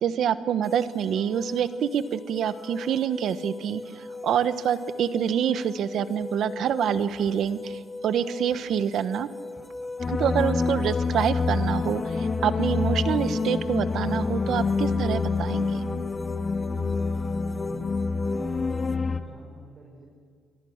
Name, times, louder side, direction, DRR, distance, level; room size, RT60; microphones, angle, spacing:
voice 1, 0.0-9.3 10.1-15.8, right 9 dB, 70° right, 13 dB, 1.1 m, -26 dB
sound 1, 0.6-19.0, left 2 dB, 10° left, 1.2 m, -39 dB
sound 2, 6.2-7.5 8.5-8.7 9.6-11.6 11.8-12.0 12.9-13.7 14.1-14.3 14.9-15.7, equal, 20° right, 7.7 m, -51 dB
sound 3, 10.0-19.2, left 4 dB, 35° left, 1.4 m, -27 dB
voice 2, 16.6-17.0 17.3-20.1, right 2 dB, 40° right, -2 dB, 6.0 m, -49 dB
28.0 x 22.0 x 6.6 m, 2.1 s
cardioid pair, 90°, 0 cm